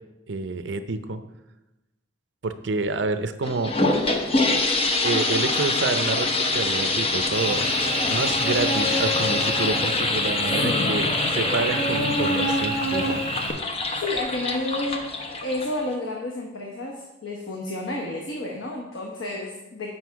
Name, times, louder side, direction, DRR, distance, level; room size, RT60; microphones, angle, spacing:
voice 1, 0.3-1.2 2.4-3.7 5.0-11.1 11.3-13.2, right 3 dB, 65° right, 10 dB, 0.6 m, -28 dB
sound 1, 3.4-15.9, left 2 dB, 30° left, 0.7 m, -25 dB
Cricket / Buzz, 7.3-13.5, right 1 dB, 50° left, 2.5 m, -28 dB
voice 2, 10.6-11.0 13.7-15.1 15.4-19.9, left 2 dB, 85° left, -1 dB, 1.0 m, -31 dB
7.9 x 5.8 x 4.6 m, 1.0 s
head